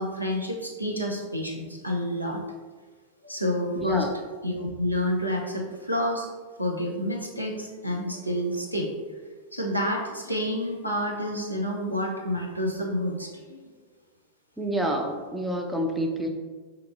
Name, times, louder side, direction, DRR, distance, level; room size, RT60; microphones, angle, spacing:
voice 1, 0.0-2.4 3.2-4.1 4.4-6.3 6.6-8.9 9.5-13.6, equal, 90° right, 0 dB, 0.6 m, -29 dB
voice 2, 3.8-4.1 14.6-16.3, right 1 dB, 5° right, 2 dB, 0.5 m, -28 dB
5.7 x 3.0 x 2.6 m, 1.4 s
figure-of-eight pair, 90°, 0 cm